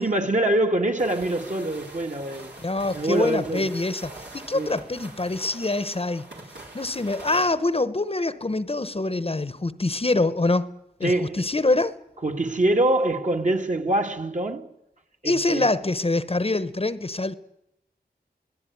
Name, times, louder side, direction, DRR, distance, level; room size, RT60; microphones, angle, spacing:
voice 1, 0.0-2.5 2.9-3.7 4.5-4.8 11.0-11.4 12.2-14.7 15.2-15.7, right 1 dB, 45° right, 2.1 m, -24 dB
sound 1, 1.0-7.5, right 2 dB, 80° right, 4.8 m, -43 dB
voice 2, 2.6-6.2 6.7-10.7 11.0-12.0 15.2-17.3, left 2 dB, 35° left, 1.0 m, -25 dB
24.0 x 17.0 x 9.5 m
wide cardioid pair, 55°, 17 cm